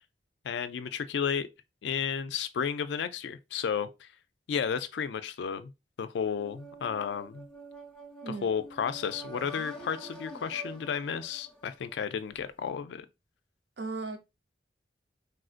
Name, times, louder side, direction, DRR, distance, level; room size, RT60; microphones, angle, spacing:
voice 1, 0.4-1.5 1.8-4.1 4.5-5.7 6.0-7.5 8.3-13.1, left 7 dB, 75° left, 0.4 m, -32 dB
sound 1, 6.3-12.2, right 1 dB, 5° left, 0.8 m, -47 dB
voice 2, 8.2-8.5 13.8-14.2, right 3 dB, 65° right, 0.6 m, -36 dB
3.5 x 2.5 x 2.4 m
head